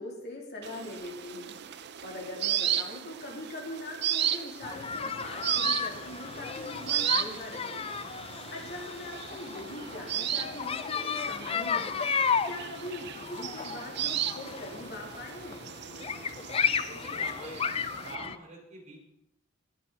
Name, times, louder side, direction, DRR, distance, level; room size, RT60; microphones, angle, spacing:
voice 1, 0.0-7.9 8.3-15.7, left 1 dB, 55° left, -1 dB, 3.0 m, -42 dB
sound 1, 0.6-18.1, right 10 dB, 55° right, 0.5 m, -35 dB
sound 2, 4.6-18.4, left 6 dB, 30° left, 0.4 m, -34 dB
voice 2, 16.9-19.0, right 2 dB, 35° right, 0 dB, 3.5 m, -46 dB
20.0 x 7.7 x 4.0 m, 0.82 s
head